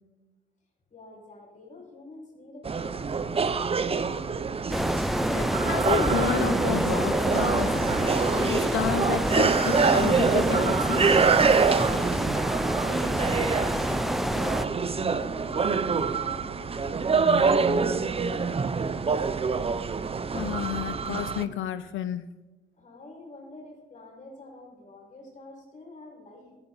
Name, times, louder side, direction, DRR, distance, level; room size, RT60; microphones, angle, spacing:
voice 1, 0.9-4.0 13.9-19.4 22.8-26.6, left 2 dB, 40° left, -2 dB, 5.7 m, -47 dB
sound 1, 2.6-21.4, right 5 dB, 30° right, 0.7 m, -26 dB
sound 2, 4.7-14.7, equal, ahead, 0.5 m, -27 dB
voice 2, 5.3-8.0 8.3-11.1 20.3-22.3, left 10 dB, 80° left, 12 dB, 0.7 m, -31 dB
15.0 x 14.0 x 4.1 m, 1.1 s
cardioid pair, 90°, 20 cm